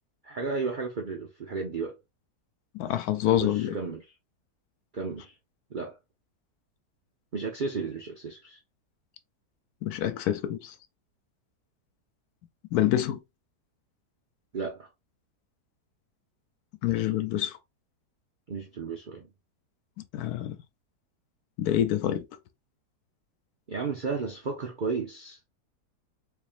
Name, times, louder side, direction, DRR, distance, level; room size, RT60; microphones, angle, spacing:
voice 1, 0.2-2.0 3.4-4.0 4.9-5.3 5.7-6.0 7.3-8.6 14.5-14.9 18.5-19.3 23.7-25.4, right 4 dB, 60° right, 0.5 m, -33 dB
voice 2, 2.7-3.7 9.8-10.7 12.7-13.2 16.8-17.6 20.1-20.6 21.6-22.2, left 12 dB, 75° left, 1.0 m, -26 dB
3.5 x 3.5 x 2.5 m
omnidirectional pair, 1.8 m